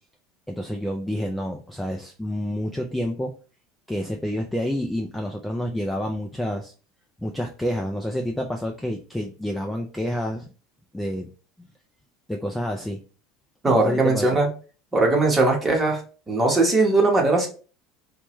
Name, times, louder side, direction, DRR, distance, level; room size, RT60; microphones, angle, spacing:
voice 1, 0.5-3.3 3.9-6.7 7.2-10.5 10.9-11.3 11.6-11.7 12.3-13.0 13.7-14.3, equal, 5° left, 2 dB, 0.3 m, -28 dB
voice 2, 13.6-14.5 14.9-16.0 16.3-17.5, right 2 dB, 15° right, 0 dB, 1.0 m, -19 dB
4.6 x 2.2 x 3.0 m, 0.37 s
cardioid pair, 150°, 0 cm